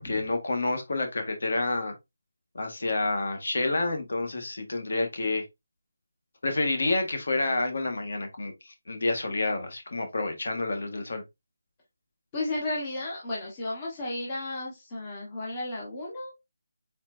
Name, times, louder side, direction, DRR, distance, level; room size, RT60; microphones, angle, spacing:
voice 1, 0.0-1.9 2.5-5.4 6.4-8.5 8.9-11.2, left 2 dB, 50° left, 1.3 m, -28 dB
voice 2, 12.3-16.3, left 2 dB, 15° left, 0.9 m, -33 dB
4.3 x 4.2 x 2.5 m
figure-of-eight pair, 180°, 0 cm